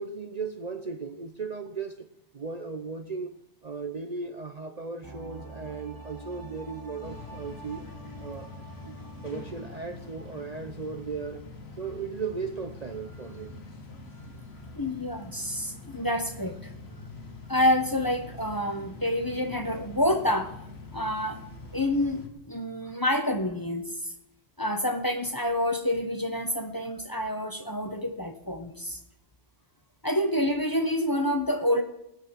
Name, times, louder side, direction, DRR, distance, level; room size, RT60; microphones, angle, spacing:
voice 1, 0.0-2.1 2.3-7.8 8.2-8.5 8.8-9.0 9.2-11.4 11.8-13.6, right 4 dB, 40° right, 8 dB, 0.8 m, -36 dB
sound 1, 5.0-10.7 11.0-11.1, right 2 dB, 15° right, 1.8 m, -46 dB
sound 2, 7.0-22.3, left 2 dB, 60° left, 1.9 m, -44 dB
voice 2, 14.7-16.7 17.5-20.5 20.9-21.4 21.7-24.1 24.6-29.0 30.0-31.8, left 1 dB, 20° left, 7 dB, 0.9 m, -28 dB
18.5 x 6.4 x 7.4 m, 0.85 s
omnidirectional pair, 1.2 m